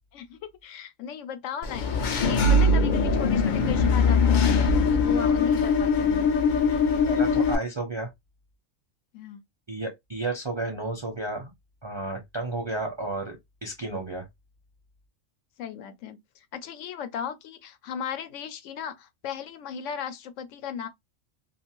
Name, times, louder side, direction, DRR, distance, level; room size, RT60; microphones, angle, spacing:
voice 1, 0.1-6.3 9.1-9.4 15.6-20.9, left 8 dB, 75° left, 0.9 m, -37 dB
Engine / Mechanisms, 1.6-7.6, left 4 dB, 60° left, 0.5 m, -21 dB
voice 2, 7.1-8.1 9.7-11.5 11.8-13.4 13.6-14.3, right 2 dB, 30° right, 0.5 m, -32 dB
2.5 x 2.5 x 2.9 m
omnidirectional pair, 1.4 m